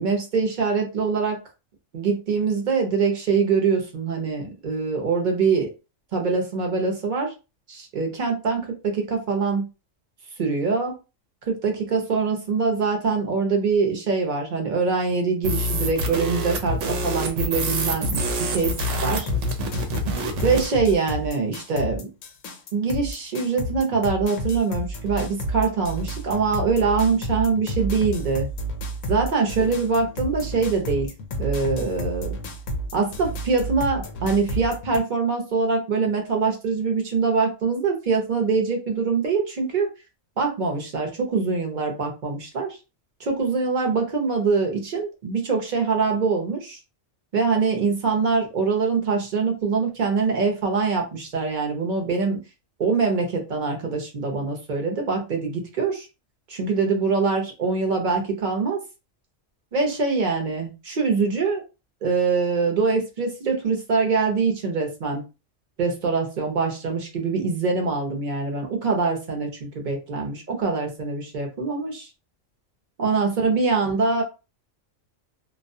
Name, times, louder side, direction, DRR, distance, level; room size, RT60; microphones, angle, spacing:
voice 1, 0.0-1.4 1.9-5.7 6.1-7.3 7.7-9.7 10.4-10.9 11.5-18.3 18.5-18.7 19.0-19.3 20.4-22.1 22.7-28.5 29.1-31.1 31.4-32.4 32.9-39.9 40.4-42.7 43.2-46.8 47.3-52.4 52.8-56.1 56.5-58.8 59.7-61.6 62.0-65.2 65.8-72.1 73.0-74.2, right 4 dB, 45° right, 2 dB, 0.7 m, -24 dB
sound 1, 15.4-20.7, equal, 70° right, 0.9 m, -26 dB
sound 2, 18.1-35.0, right 1 dB, 75° left, 0.9 m, -31 dB
2.3 x 2.1 x 2.6 m, 0.29 s
omnidirectional pair, 1.3 m